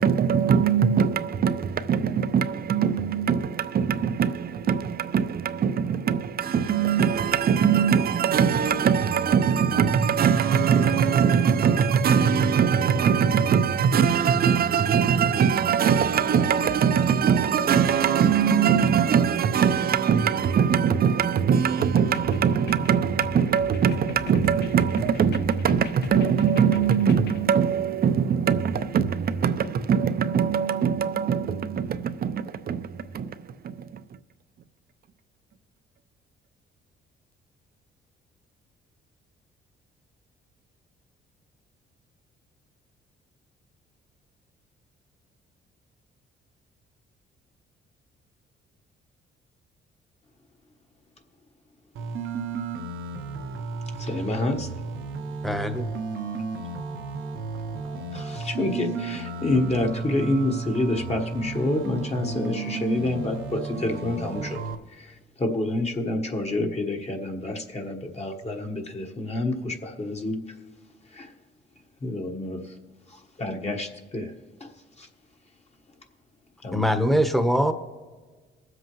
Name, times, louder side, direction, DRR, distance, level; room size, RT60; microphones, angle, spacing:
voice 1, 0.0-33.9, right 7 dB, 50° right, 0.6 m, -22 dB
sound 1, 21.8-27.4, left 9 dB, 60° left, 0.4 m, -40 dB
sound 2, 52.0-64.8, right 4 dB, 80° right, 0.9 m, -33 dB
voice 2, 54.0-54.7 58.1-64.6 64.9-70.4 71.1-71.3 72.0-72.6 73.1-74.3 74.6-74.7 75.0-75.1 76.6-76.8, left 2 dB, 30° left, 1.4 m, -28 dB
voice 3, 55.4-55.9 76.7-77.7, equal, ahead, 1.0 m, -22 dB
20.5 x 7.8 x 3.1 m
cardioid pair, 90°, 20 cm